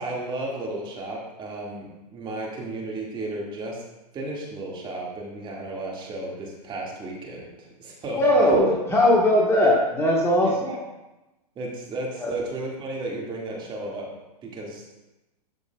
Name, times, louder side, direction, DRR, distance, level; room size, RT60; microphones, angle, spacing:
voice 1, 0.0-3.8 4.1-8.2 10.4-10.8 11.6-14.1 14.4-14.8, right 2 dB, 20° right, -3 dB, 2.0 m, -34 dB
voice 2, 8.2-10.7 12.2-12.3, left 1 dB, 10° left, -3 dB, 1.4 m, -19 dB
12.5 x 6.4 x 2.4 m, 1.0 s
hypercardioid pair, 120°, 21 cm